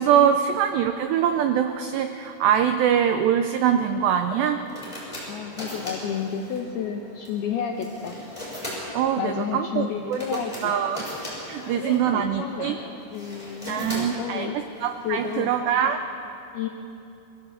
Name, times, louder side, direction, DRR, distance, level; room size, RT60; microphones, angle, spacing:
voice 1, 0.0-4.6 8.9-10.2 10.6-11.0 11.5-12.8 13.6-16.0, right 9 dB, 85° right, 7 dB, 2.4 m, -23 dB
sound 1, 4.2-15.4, left 1 dB, 5° left, 6.8 m, -39 dB
voice 2, 5.3-8.2 9.2-10.8 11.6-14.6 15.0-15.5 16.5-16.7, left 7 dB, 80° left, 1 dB, 2.3 m, -31 dB
24.5 x 15.5 x 8.2 m, 2.8 s
omnidirectional pair, 5.9 m